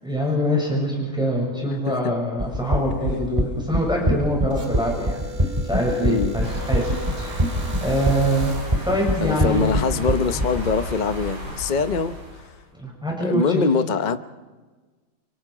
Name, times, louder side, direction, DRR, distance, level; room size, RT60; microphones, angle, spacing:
voice 1, 0.0-7.5 7.8-8.5 8.8-9.7 12.7-13.6, equal, ahead, -2 dB, 6.8 m, -24 dB
sound 1, 2.4-10.7, equal, 20° right, 2.3 m, -23 dB
sound 2, 4.5-8.9, right 1 dB, 60° right, 2.8 m, -39 dB
voice 2, 6.0-6.4 9.2-12.2 13.2-14.2, left 5 dB, 40° left, 10 dB, 0.7 m, -23 dB
sound 3, 6.4-12.6, equal, 80° right, 6.7 m, -34 dB
30.0 x 29.0 x 4.9 m, 1.3 s
omnidirectional pair, 1.8 m